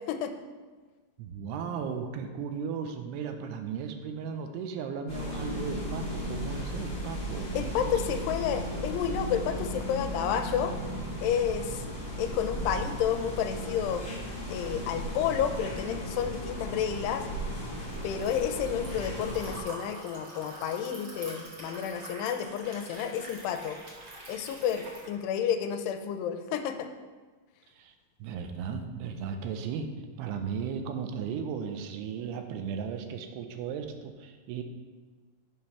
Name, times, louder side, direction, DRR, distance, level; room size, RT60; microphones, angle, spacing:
voice 1, 1.2-7.9 27.7-28.0 28.2-29.9 30.2-34.6, right 6 dB, 80° right, 6 dB, 2.6 m, -36 dB
sound 1, 5.1-19.6, equal, 20° left, 2.0 m, -36 dB
voice 2, 7.5-10.7 11.2-11.9 12.2-14.0 14.5-17.3 18.0-23.8 24.3-26.9, left 8 dB, 85° left, 7 dB, 2.6 m, -30 dB
Liquid, 16.8-25.1, right 1 dB, 55° right, 1.2 m, -46 dB
8.1 x 5.0 x 5.8 m, 1.4 s
omnidirectional pair, 4.7 m